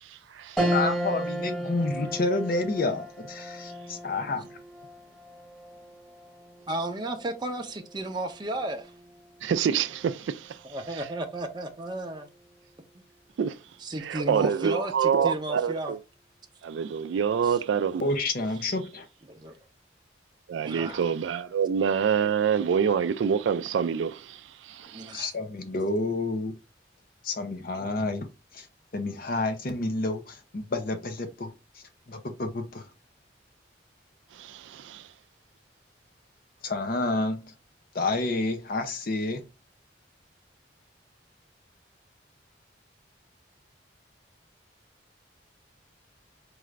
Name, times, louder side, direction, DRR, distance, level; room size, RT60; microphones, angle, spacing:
sound 1, 0.6-10.2 10.6-10.7 12.1-12.5, right 1 dB, 5° left, 1.0 m, -35 dB
voice 1, 0.7-4.6 18.0-19.1 25.1-26.5 27.2-28.3 28.5-28.7 28.9-31.5 32.1-32.9 36.6-37.5 37.9-39.4, left 2 dB, 50° left, 0.6 m, -29 dB
voice 2, 6.7-8.9 10.6-12.3 13.8-15.9 17.4-17.6 19.3-19.6 20.6-21.0 24.9-25.3 27.7-28.1, right 1 dB, 25° right, 0.6 m, -34 dB
voice 3, 9.4-10.6 13.4-13.6 14.0-16.0 16.6-18.1 20.5-25.1 34.3-35.1, right 7 dB, 85° right, 0.3 m, -26 dB
4.8 x 2.5 x 3.2 m
head